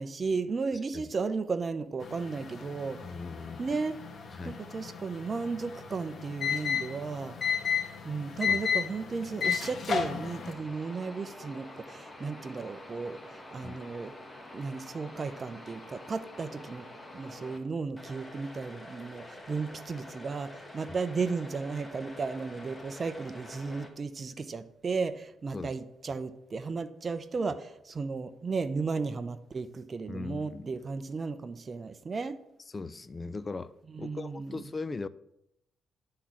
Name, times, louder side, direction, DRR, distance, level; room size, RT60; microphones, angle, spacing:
voice 1, 0.0-3.0 3.6-4.0 4.4-7.4 8.0-14.1 14.5-16.9 17.1-32.4 33.9-34.6, right 4 dB, 35° right, 0.7 m, -34 dB
sound 1, 2.0-10.5, left 7 dB, 45° left, 1.5 m, -34 dB
voice 2, 3.0-3.6 4.3-4.6 8.5-8.6 13.6-13.8 25.5-25.7 30.1-30.8 32.7-33.7 34.0-35.1, left 3 dB, 30° left, 0.5 m, -39 dB
sound 2, 10.5-17.6 18.0-23.9, left 1 dB, 15° left, 1.4 m, -47 dB
9.9 x 3.8 x 7.3 m
cardioid pair, 90°, 0 cm